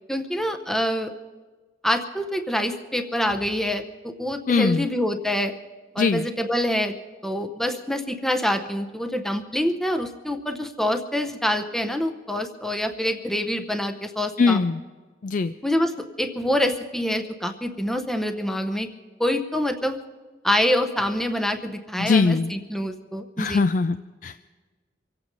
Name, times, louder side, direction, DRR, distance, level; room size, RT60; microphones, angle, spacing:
voice 1, 0.1-1.1 1.8-5.5 5.9-6.9 7.2-14.6 15.6-18.9 19.2-20.0 20.4-23.6, left 1 dB, ahead, 6 dB, 0.7 m, -26 dB
voice 2, 4.5-4.9 6.0-6.2 14.4-14.8 15.2-15.5 22.0-22.5 23.4-24.5, left 4 dB, 45° left, 11 dB, 0.4 m, -21 dB
25.0 x 8.9 x 5.3 m, 1.4 s
head